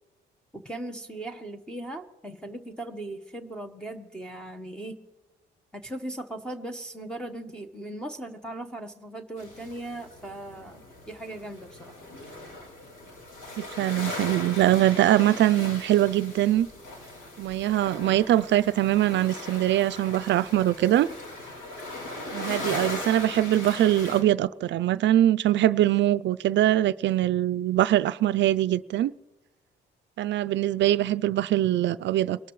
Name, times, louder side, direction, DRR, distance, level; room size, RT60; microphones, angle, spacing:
voice 1, 0.5-5.0 5.7-11.9, right 1 dB, 5° left, 1.1 m, -38 dB
sound 1, 9.4-24.2, left 2 dB, 85° left, 4.1 m, -39 dB
voice 2, 13.6-16.7 17.4-21.1 22.3-29.1 30.2-32.4, right 13 dB, 65° right, 0.4 m, -23 dB
22.5 x 12.5 x 3.1 m
cardioid pair, 90°, 20 cm